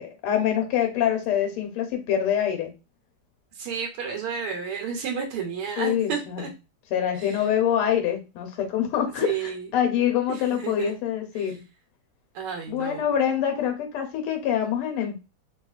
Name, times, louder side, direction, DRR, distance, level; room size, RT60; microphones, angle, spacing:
voice 1, 0.0-2.7 5.8-6.5 6.9-11.6 12.7-15.2, left 9 dB, 85° left, 4 dB, 1.7 m, -25 dB
voice 2, 3.5-6.5 7.2-7.4 9.2-9.7 10.3-10.9 11.4-11.5 12.3-13.0, right 7 dB, 85° right, 2 dB, 1.6 m, -31 dB
3.5 x 2.8 x 2.3 m, 0.27 s
omnidirectional pair, 2.4 m